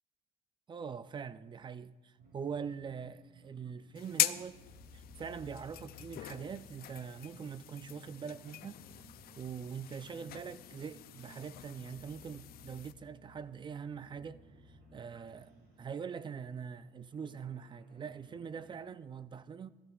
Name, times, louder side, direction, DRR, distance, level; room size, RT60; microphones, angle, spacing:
voice 1, 0.7-4.6 4.9-8.8 9.4-14.4 14.7-19.7, right 6 dB, 30° right, 0.5 m, -43 dB
sound 1, 2.2-18.9, equal, 65° right, 2.5 m, -59 dB
sound 2, 4.0-12.9, left 13 dB, 60° left, 0.5 m, -41 dB
19.5 x 14.0 x 2.4 m
cardioid pair, 110°, 17 cm